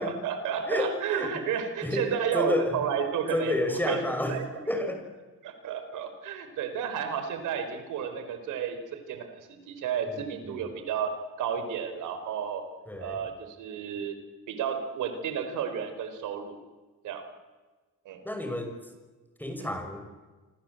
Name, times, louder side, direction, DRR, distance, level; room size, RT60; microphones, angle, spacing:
voice 1, 0.0-4.0 4.3-4.4 5.4-12.6 13.0-14.1 14.5-16.6 17.0-17.2 18.0-18.2 19.6-19.7, right 7 dB, 90° right, 8 dB, 4.5 m, -32 dB
voice 2, 0.7-1.4 1.8-2.1 2.3-2.8 3.3-4.4 4.7-5.1 10.1-10.7 12.9-13.2 18.2-18.8 19.4-20.0, left 1 dB, 5° left, 5 dB, 5.9 m, -30 dB
27.5 x 26.0 x 7.9 m, 1.3 s
cardioid pair, 90°, 30 cm